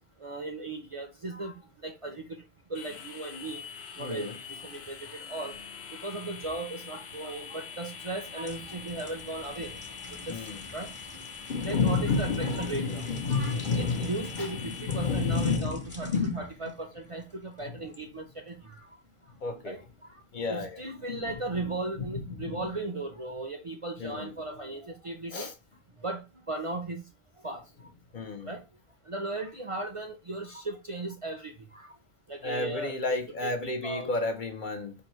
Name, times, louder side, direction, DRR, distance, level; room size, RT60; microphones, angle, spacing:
voice 1, 0.2-1.5 1.8-2.2 2.7-3.6 4.0-5.6 6.0-9.7 10.3-10.4 10.7-10.9 11.6-18.8 19.6-19.8 20.5-25.5 26.0-27.0 27.4-27.6 28.5-28.6 29.1-31.9 32.3-33.1 33.4-34.1, right 2 dB, 40° right, 0.5 m, -37 dB
sound 1, 2.7-15.6, left 7 dB, 80° left, 0.9 m, -44 dB
voice 2, 4.0-4.3 10.3-10.6 11.5-16.4 19.4-19.8 20.3-20.8 21.1-21.2 22.0-22.6 24.0-24.3 25.3-25.5 28.1-28.5 32.4-34.9, left 4 dB, 55° left, 0.7 m, -31 dB
sound 2, 8.1-18.0 18.5-18.7, left 1 dB, 30° left, 1.0 m, -48 dB
4.6 x 2.6 x 3.0 m
omnidirectional pair, 1.1 m